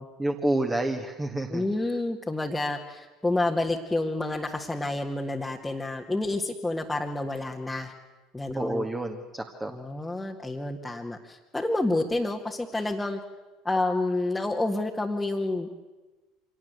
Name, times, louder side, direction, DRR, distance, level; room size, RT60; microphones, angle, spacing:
voice 1, 0.2-1.6 8.5-9.8, right 1 dB, 15° right, 3 dB, 2.0 m, -29 dB
voice 2, 1.5-7.9 8.3-8.9 9.7-13.2 13.6-15.7, left 2 dB, 10° left, -1 dB, 1.9 m, -29 dB
25.5 x 18.5 x 8.2 m, 1.2 s
hypercardioid pair, 70°, 0 cm